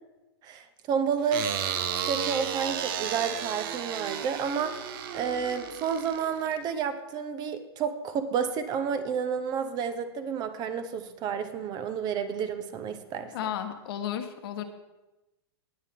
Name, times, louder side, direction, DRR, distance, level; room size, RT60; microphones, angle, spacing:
voice 1, 0.4-1.5 2.1-4.8 5.1-13.3, right 7 dB, 30° right, 10 dB, 1.0 m, -30 dB
sound 1, 1.3-6.6, right 9 dB, 55° right, 1.1 m, -33 dB
voice 2, 13.3-14.6, left 10 dB, 60° left, 6 dB, 1.4 m, -33 dB
19.5 x 8.3 x 3.7 m, 1.0 s
hypercardioid pair, 135°, 14 cm